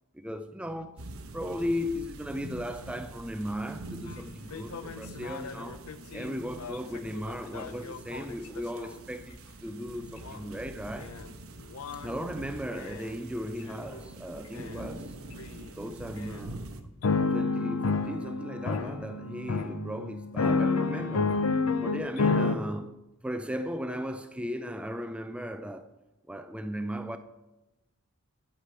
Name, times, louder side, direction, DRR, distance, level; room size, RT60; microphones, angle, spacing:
voice 1, 0.1-1.0 1.3-5.9 6.1-11.2 11.9-15.1 15.6-16.7 17.3-21.4 21.8-25.9 26.3-27.2, equal, 5° right, 0.3 m, -36 dB
sound 1, 1.0-16.8, right 2 dB, 75° right, 0.9 m, -45 dB
sound 2, 4.1-4.2 4.5-8.9 10.2-10.4 11.0-11.3 11.7-12.2 12.8-13.1 13.7-14.0 14.6-14.7 15.4-15.5 16.2-16.3 17.0-22.6, left 4 dB, 80° left, 0.6 m, -30 dB
11.5 x 4.9 x 6.7 m
head